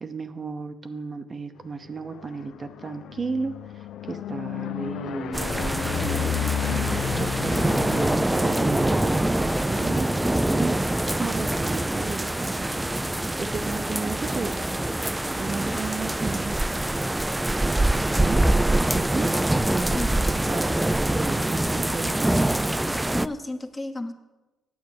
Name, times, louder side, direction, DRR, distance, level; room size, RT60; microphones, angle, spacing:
voice 1, 0.0-10.1 10.5-10.8 11.2-12.9 13.4-14.5 15.2-16.7 18.2-18.4 18.9-19.4 19.7-20.0 20.3-22.6, right 4 dB, 35° right, 8 dB, 0.7 m, -34 dB
sound 1, 1.8-15.8 16.3-16.7 17.0-17.1 17.4-20.5, left 10 dB, 75° left, 0.4 m, -35 dB
sound 2, 5.3-23.3, right 1 dB, 10° right, 0.3 m, -24 dB
voice 2, 19.9-20.8 23.1-24.1, left 2 dB, 20° left, 6 dB, 1.0 m, -34 dB
9.6 x 7.9 x 6.5 m, 1.1 s
cardioid pair, 90°, 0 cm